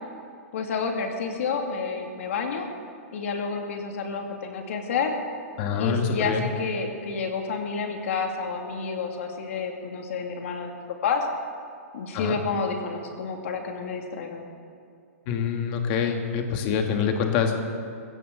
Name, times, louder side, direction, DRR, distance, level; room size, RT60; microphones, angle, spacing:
voice 1, 0.5-2.7 3.1-5.2 5.8-10.7 11.0-11.3 11.9-14.4, left 5 dB, 60° left, 3 dB, 2.4 m, -29 dB
voice 2, 5.6-6.5 12.1-12.4 15.3-17.5, left 6 dB, 35° left, 4 dB, 1.6 m, -25 dB
21.5 x 16.0 x 3.8 m, 2.4 s
hypercardioid pair, 155°, 8 cm